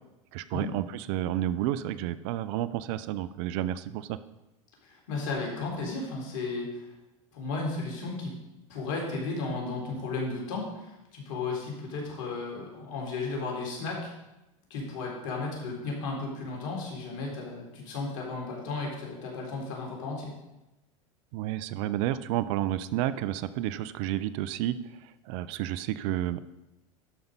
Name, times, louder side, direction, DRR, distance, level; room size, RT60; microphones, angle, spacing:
voice 1, 0.3-4.2 21.3-24.8 25.0-26.4, right 13 dB, 60° right, 15 dB, 0.6 m, -31 dB
voice 2, 4.8-6.9 7.3-8.3 8.7-14.1 14.7-20.3, left 3 dB, 70° left, -1 dB, 3.7 m, -34 dB
12.0 x 5.5 x 5.4 m, 0.97 s
hypercardioid pair, 100°, 17 cm